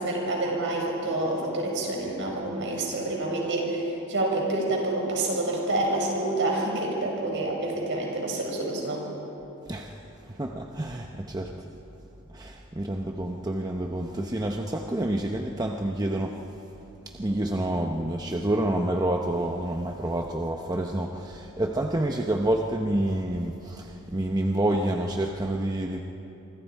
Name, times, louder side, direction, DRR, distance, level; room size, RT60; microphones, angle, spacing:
voice 1, 0.0-9.0, right 2 dB, 55° right, -1 dB, 5.6 m, -28 dB
voice 2, 10.3-11.5 12.3-16.4 17.1-26.0, right 1 dB, 15° right, 2 dB, 0.8 m, -28 dB
27.0 x 25.0 x 4.6 m, 2.9 s
head